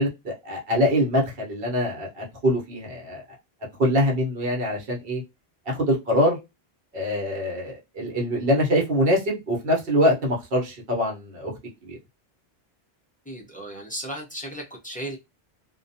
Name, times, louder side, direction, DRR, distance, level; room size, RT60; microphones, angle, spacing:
voice 1, 0.0-3.2 3.8-5.2 5.7-6.4 6.9-11.5 11.8-12.0, equal, 60° right, 1.1 m, -24 dB
voice 2, 13.3-15.2, right 1 dB, 10° left, 0.5 m, -35 dB
2.4 x 2.2 x 2.7 m
omnidirectional pair, 1.1 m